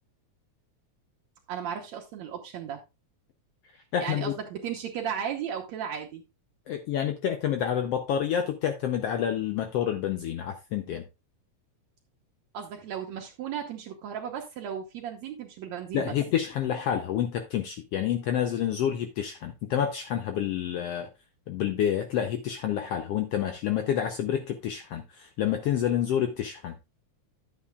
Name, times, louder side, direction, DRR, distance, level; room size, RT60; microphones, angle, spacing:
voice 1, 1.5-2.8 4.0-6.2 12.5-16.1, right 8 dB, 70° right, 2.1 m, -35 dB
voice 2, 3.9-4.3 6.7-11.0 15.9-21.1 21.5-26.8, left 9 dB, 75° left, 1.5 m, -28 dB
11.0 x 8.4 x 2.3 m
omnidirectional pair, 3.4 m